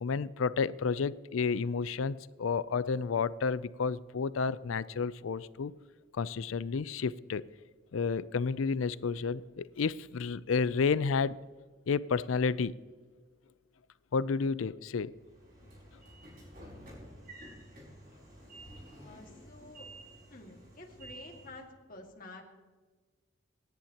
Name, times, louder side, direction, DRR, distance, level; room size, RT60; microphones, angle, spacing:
voice 1, 0.0-5.7 6.1-7.4 7.9-11.4 11.9-12.7 14.1-15.1, left 5 dB, 85° left, 17 dB, 0.4 m, -31 dB
Train / Sliding door, 15.2-21.7, right 1 dB, 45° right, 5.4 m, -51 dB
voice 2, 18.9-19.9 20.1-22.4, left 2 dB, 45° left, 2 dB, 2.0 m, -50 dB
27.0 x 10.5 x 2.9 m, 1.4 s
head